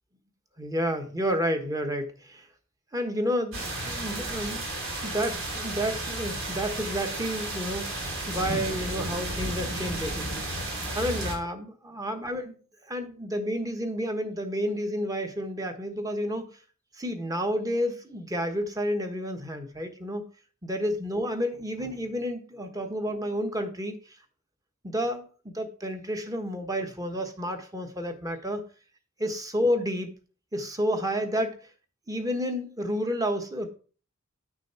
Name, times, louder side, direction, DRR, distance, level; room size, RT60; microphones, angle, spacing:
voice 1, 0.6-2.5 2.9-4.7 5.0-12.6 12.8-16.5 16.9-20.2 20.6-24.0 24.8-25.2 25.5-28.6 29.2-30.1 30.5-31.6 32.1-33.7, equal, 15° right, 5 dB, 1.3 m, -30 dB
sound 1, 3.5-11.4, right 1 dB, 75° right, 3.4 m, -33 dB
9.7 x 6.2 x 4.4 m, 0.39 s
head